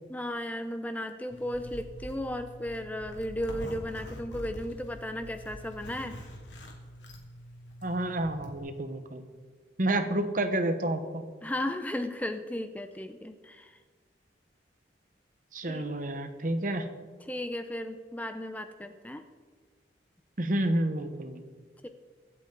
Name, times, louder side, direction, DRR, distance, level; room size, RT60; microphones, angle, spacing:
voice 1, 0.1-6.2 11.4-13.8 15.7-15.8 17.3-19.2 21.8-21.9, left 1 dB, 10° left, 8 dB, 0.5 m, -35 dB
Zipper (clothing), 1.3-8.6, equal, 85° left, 2.6 m, -44 dB
voice 2, 7.8-9.2 9.8-11.2 15.5-16.9 20.4-21.4, right 1 dB, 45° right, 8 dB, 1.1 m, -29 dB
24.0 x 8.3 x 3.9 m, 1.5 s
head